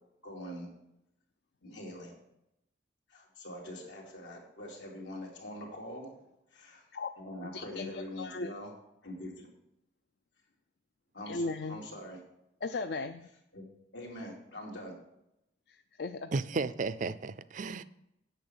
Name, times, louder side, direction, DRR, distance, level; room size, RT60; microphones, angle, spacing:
voice 1, 0.2-0.7 1.6-2.1 3.1-6.1 6.5-6.8 7.2-8.7 9.0-9.5 11.1-11.4 11.7-12.2 13.5-13.6 13.9-14.9, left 1 dB, 85° left, 3.3 m, -43 dB
voice 2, 7.4-8.5 11.3-11.8 12.6-13.3 15.7-16.3, left 3 dB, 60° left, 0.5 m, -37 dB
voice 3, 16.3-17.8, right 3 dB, 45° right, 0.4 m, -33 dB
9.0 x 6.0 x 8.1 m
head